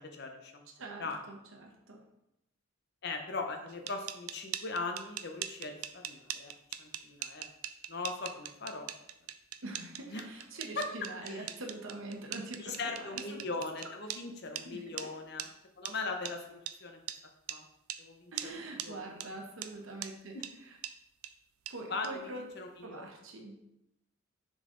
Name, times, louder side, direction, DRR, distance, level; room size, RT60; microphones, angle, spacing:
voice 1, 0.0-0.6 1.0-1.2 3.0-6.5 6.8-7.5 7.9-8.9 10.1-10.2 10.8-10.9 11.2-11.4 12.6-15.5 15.8-17.0 17.5-17.6 18.0-19.1 21.9-22.1 22.6-23.0, left 3 dB, 50° left, 4 dB, 0.7 m, -39 dB
voice 2, 0.8-2.1 9.6-13.6 14.5-15.1 18.3-20.8 21.7-23.6, right 2 dB, 70° right, 1 dB, 0.9 m, -44 dB
sound 1, 3.7-14.2 14.6-14.7 15.0-15.1 15.4-15.5 15.9-16.0 16.3-16.4 16.7-16.8 17.1-17.2 17.5-17.6 17.9-18.0 18.4-18.5 18.8-18.9 19.2-19.3 19.6-19.7 20.0-20.1 20.4-20.5 20.8-20.9 21.2-21.3 21.7-21.8 22.0-22.1, right 11 dB, 85° right, 0.4 m, -40 dB
6.4 x 4.0 x 3.8 m, 0.85 s
head